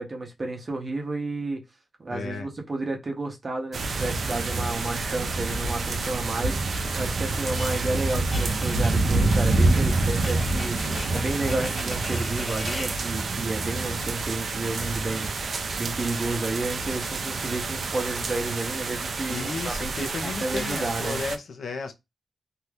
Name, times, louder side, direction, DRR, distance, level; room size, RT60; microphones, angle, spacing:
voice 1, 0.0-1.6 2.0-21.2, right 2 dB, 30° right, 0.7 m, -31 dB
voice 2, 2.1-2.5 10.8-11.3 19.3-21.9, left 4 dB, 70° left, 0.5 m, -34 dB
sound 1, 3.7-21.4, right 3 dB, 60° right, 0.4 m, -27 dB
sound 2, 7.5-13.0, left 2 dB, 20° left, 0.4 m, -40 dB
2.7 x 2.3 x 3.2 m
wide cardioid pair, 175°, 0 cm